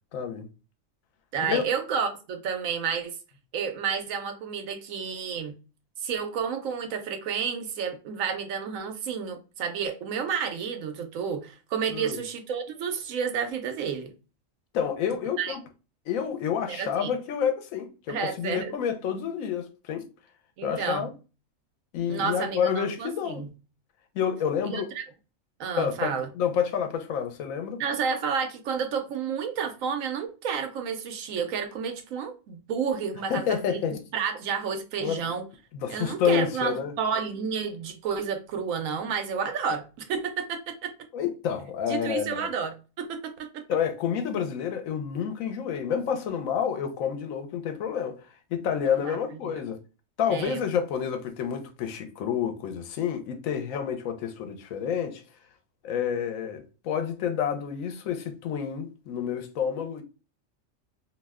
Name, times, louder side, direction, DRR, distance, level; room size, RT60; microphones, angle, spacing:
voice 1, 0.1-0.5 1.5-1.6 11.9-12.2 14.7-15.6 16.1-20.1 20.6-21.1 21.9-23.5 24.1-24.9 25.8-27.8 33.3-34.0 35.0-35.3 35.7-36.9 41.1-42.5 43.7-48.2 48.5-49.8 50.2-55.2 55.8-60.0, left 8 dB, 90° left, 1.0 m, -29 dB
voice 2, 1.3-3.2 3.5-5.6 6.0-14.1 15.4-15.6 16.7-17.1 18.1-18.7 20.6-21.1 22.1-23.5 24.6-25.0 25.6-26.3 27.8-33.8 34.1-35.4 35.9-40.9 41.9-43.6 48.8-49.2 49.4-49.5 50.3-50.6, right 6 dB, 80° right, 1.0 m, -31 dB
2.7 x 2.1 x 3.4 m
omnidirectional pair, 1.4 m